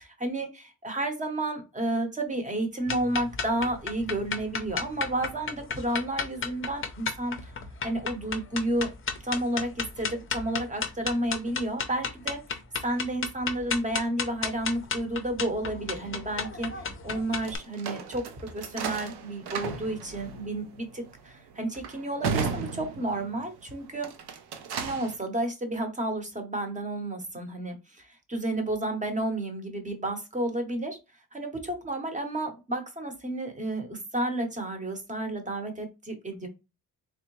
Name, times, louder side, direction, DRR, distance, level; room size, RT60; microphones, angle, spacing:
voice 1, 0.0-7.5 7.8-8.9 9.2-24.1 24.8-31.0 31.3-36.5, right 1 dB, 20° right, 5 dB, 0.8 m, -31 dB
sound 1, 2.9-17.6, left 5 dB, 35° left, 0.5 m, -33 dB
sound 2, 17.4-23.5 23.9-25.2, right 6 dB, 85° right, 0.7 m, -35 dB
3.6 x 3.2 x 3.0 m, 0.26 s
wide cardioid pair, 155°, 38 cm